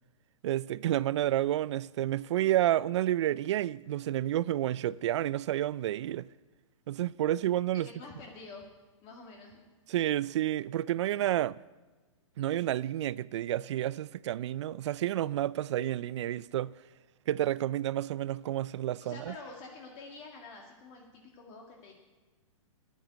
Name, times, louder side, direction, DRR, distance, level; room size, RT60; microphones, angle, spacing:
voice 1, 0.4-6.3 6.9-7.9 9.9-11.6 12.4-16.7 17.3-19.3, right 13 dB, 60° right, 0.4 m, -30 dB
voice 2, 7.7-8.7 9.0-9.6 19.0-21.9, left 3 dB, 35° left, 2.0 m, -48 dB
9.2 x 9.0 x 9.4 m
hypercardioid pair, 145°, 17 cm